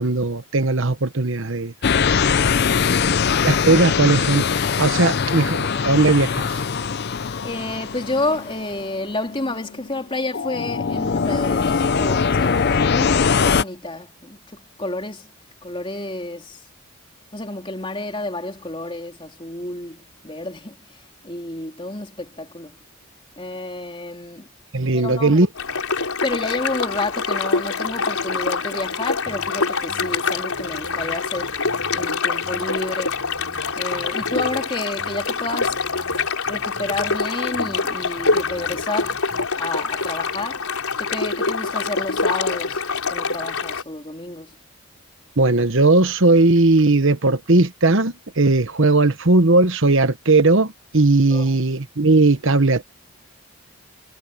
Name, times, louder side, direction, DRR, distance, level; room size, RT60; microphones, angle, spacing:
voice 1, 0.0-1.7 3.4-4.4 4.8-6.5 24.7-25.5 45.4-52.8, right 2 dB, 60° right, 1.2 m, -17 dB
sound 1, 1.8-10.0 10.3-13.6, left 6 dB, 50° left, 0.5 m, -21 dB
voice 2, 7.4-15.3 15.6-16.6 17.3-22.8 23.4-24.5 24.9-25.4 26.2-31.6 31.9-33.2 33.8-35.8 36.5-39.2 39.5-40.7 41.0-44.5 51.3-51.6, left 2 dB, 25° left, 3.8 m, -30 dB
sound 2, 25.5-43.8, left 4 dB, 80° left, 4.3 m, -25 dB
sound 3, 29.3-29.5 29.9-32.1 32.4-34.6 35.0-37.2 37.5-39.5, equal, 30° right, 7.0 m, -45 dB
head